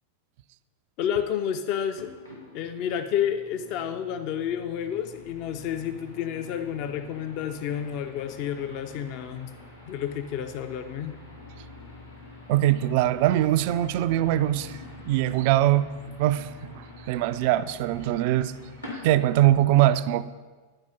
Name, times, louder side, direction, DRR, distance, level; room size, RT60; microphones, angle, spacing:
voice 1, 1.0-2.1 2.5-9.5 9.9-11.2, left 9 dB, 45° left, 0.5 m, -30 dB
sound 1, 1.9-19.5, left 2 dB, 90° left, 2.8 m, -46 dB
voice 2, 12.5-14.8 15.0-15.9 16.2-18.5 19.0-20.2, right 14 dB, 50° right, 0.3 m, -22 dB
10.5 x 4.7 x 5.5 m
figure-of-eight pair, 90°, 0 cm